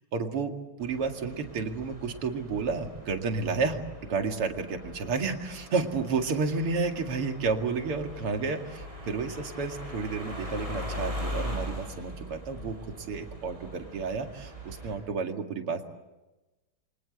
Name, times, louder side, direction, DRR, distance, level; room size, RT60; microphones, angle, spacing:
voice 1, 0.1-0.5 0.8-3.8 4.1-15.8, right 4 dB, 90° right, 4 dB, 3.1 m, -31 dB
sound 1, 0.8-15.0, equal, 15° right, 6.2 m, -40 dB
29.0 x 25.0 x 7.9 m, 1.1 s
omnidirectional pair, 2.4 m